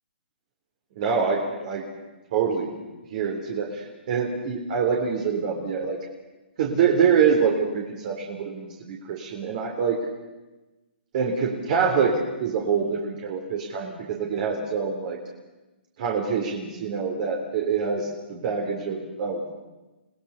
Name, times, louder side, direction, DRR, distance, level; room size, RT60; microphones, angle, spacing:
voice 1, 1.0-1.8 2.3-2.7 3.1-6.0 6.6-10.0 11.1-15.2 16.0-19.5, right 6 dB, 45° right, 0 dB, 3.8 m, -25 dB
30.0 x 19.0 x 6.6 m, 1.1 s
hypercardioid pair, 140°, 6 cm